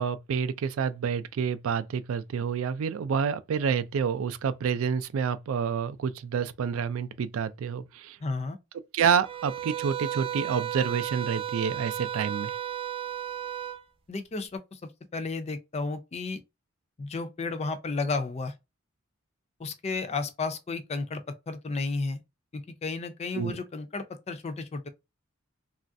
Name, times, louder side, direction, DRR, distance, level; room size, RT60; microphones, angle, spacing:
voice 1, 0.0-8.2 8.9-12.5 23.3-23.6, right 7 dB, 75° right, 0.3 m, -28 dB
voice 2, 8.2-8.6 14.1-16.4 17.0-18.5 19.6-22.2 22.5-24.9, left 3 dB, 30° left, 0.4 m, -33 dB
sound 1, 9.2-13.8, right 10 dB, 25° right, 0.6 m, -34 dB
3.0 x 2.4 x 2.5 m
head